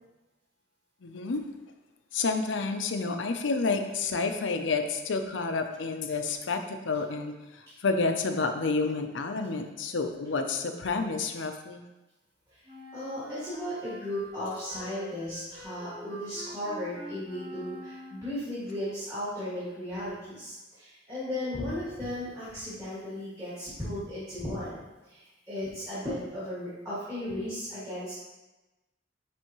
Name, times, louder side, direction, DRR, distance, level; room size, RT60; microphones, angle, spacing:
voice 1, 1.0-1.4 2.1-11.8, left 4 dB, 80° left, 6 dB, 0.6 m, -30 dB
Wind instrument woodwind instrument, 12.7-18.4, equal, 55° right, 2.1 m, -45 dB
voice 2, 12.9-28.1, left 1 dB, 15° right, -12 dB, 2.0 m, -36 dB
9.9 x 3.4 x 3.1 m, 1.1 s
head